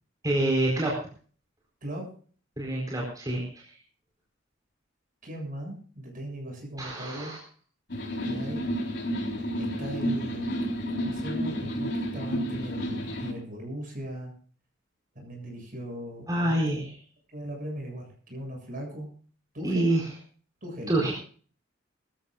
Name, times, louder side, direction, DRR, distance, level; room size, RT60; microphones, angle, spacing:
voice 1, 0.2-0.9 2.6-3.5 6.8-7.4 16.3-16.8 19.6-20.0 20.9-21.1, right 1 dB, 20° right, -2 dB, 4.4 m, -26 dB
voice 2, 5.2-7.3 8.2-8.6 9.3-10.5 10.9-14.3 15.2-16.8 17.3-19.1 19.5-19.9 20.6-21.1, right 1 dB, 45° right, 2 dB, 7.4 m, -38 dB
sound 1, 7.9-13.3, equal, 60° left, 4.2 m, -31 dB
23.0 x 14.0 x 2.5 m, 0.43 s
head